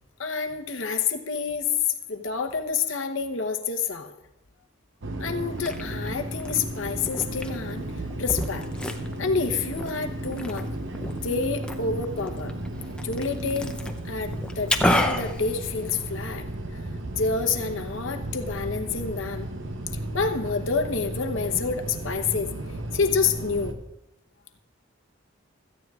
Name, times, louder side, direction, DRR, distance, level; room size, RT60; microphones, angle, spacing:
voice 1, 0.2-1.7 2.1-4.1 5.2-7.8 8.2-8.7 9.2-10.7 11.0-12.5 13.0-13.8 14.0-16.4 16.7-16.8 17.2-19.5 20.1-22.5 22.9-23.8, left 5 dB, 65° left, 5 dB, 0.9 m, -28 dB
sound 1, 5.0-23.7, right 1 dB, 60° right, 0.9 m, -34 dB
Liquid, 5.3-16.3, left 1 dB, 5° left, 0.6 m, -32 dB
17.0 x 13.5 x 2.4 m, 0.89 s
head